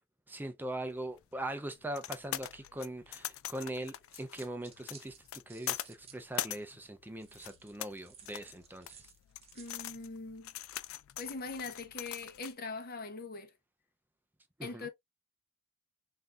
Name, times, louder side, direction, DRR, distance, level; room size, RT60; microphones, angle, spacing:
voice 1, 0.3-5.2 5.5-9.1 14.6-14.9, right 1 dB, 10° right, 0.4 m, -41 dB
sound 1, 0.8-12.5, left 12 dB, 85° left, 0.4 m, -43 dB
sound 2, 3.9-6.6 7.2-9.9, right 7 dB, 30° right, 0.9 m, -57 dB
voice 2, 9.5-10.5 11.2-13.5 14.6-14.9, left 4 dB, 50° left, 0.8 m, -42 dB
5.6 x 2.6 x 2.3 m
head